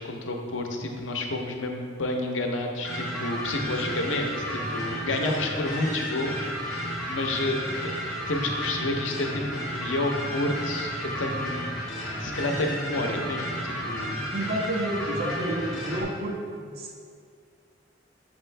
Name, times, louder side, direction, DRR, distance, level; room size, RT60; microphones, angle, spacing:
voice 1, 0.0-11.7 12.2-14.2, left 2 dB, 75° left, 3 dB, 0.7 m, -30 dB
sound 1, 2.8-16.0, equal, ahead, 1.7 m, -32 dB
voice 2, 3.7-4.0 5.1-5.4 14.3-17.0, right 1 dB, 50° right, 0 dB, 0.7 m, -31 dB
6.1 x 6.1 x 3.3 m, 2.2 s
head